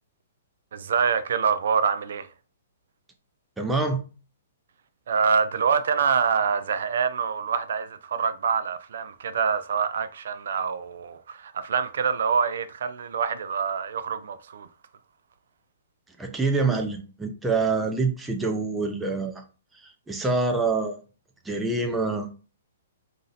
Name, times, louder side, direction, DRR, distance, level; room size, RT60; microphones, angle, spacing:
voice 1, 0.7-2.3 5.1-14.7, right 6 dB, 65° right, 0.4 m, -25 dB
voice 2, 3.6-4.0 16.2-19.3 19.8-21.0 21.4-22.3, right 3 dB, 5° right, 0.5 m, -26 dB
4.1 x 2.7 x 3.9 m
hypercardioid pair, 165°, 0 cm